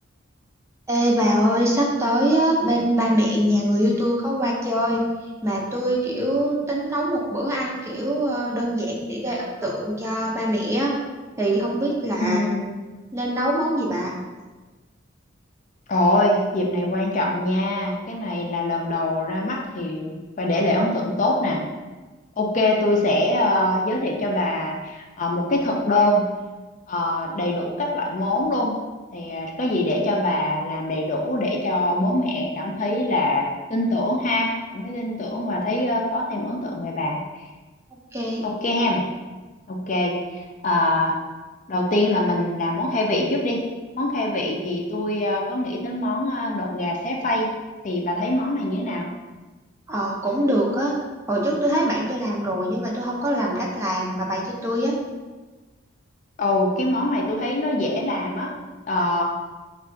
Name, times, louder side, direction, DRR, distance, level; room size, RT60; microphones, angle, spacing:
voice 1, 0.9-5.0 5.4-10.9 11.4-12.4 13.1-14.1 37.9-38.4 49.9-50.9 51.3-54.9, equal, 15° right, -2 dB, 0.5 m, -23 dB
voice 2, 12.2-12.6 15.9-21.6 22.4-26.3 26.9-28.8 29.1-33.4 33.7-37.2 38.4-39.0 39.7-41.2 41.7-43.6 43.9-47.5 47.8-49.1 56.4-58.5 58.9-59.2, left 1 dB, 40° left, -1 dB, 0.5 m, -23 dB
3.5 x 2.5 x 4.4 m, 1.3 s
head